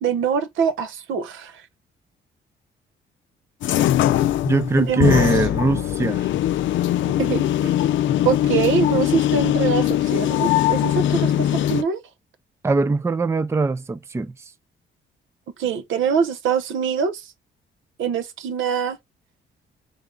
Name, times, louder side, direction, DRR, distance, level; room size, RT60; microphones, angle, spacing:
voice 1, 0.0-1.5 4.8-5.2 7.2-7.7 8.2-12.0 15.6-17.2 18.0-19.0, right 7 dB, 80° right, 0.8 m, -24 dB
sound 1, 3.6-11.8, left 12 dB, 75° left, 0.5 m, -21 dB
voice 2, 4.5-6.3 12.6-14.3, right 3 dB, 15° right, 0.4 m, -21 dB
3.6 x 3.4 x 3.7 m
cardioid pair, 90°, 20 cm